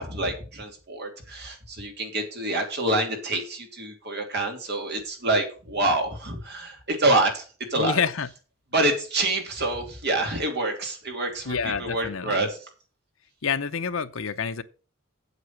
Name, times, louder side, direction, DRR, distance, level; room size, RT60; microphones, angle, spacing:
voice 1, 0.0-7.4 7.7-8.0 8.7-12.6, right 2 dB, 55° right, 2.9 m, -27 dB
voice 2, 7.8-8.3 11.5-12.5 13.4-14.6, left 6 dB, 70° left, 0.8 m, -28 dB
8.3 x 8.1 x 5.8 m
head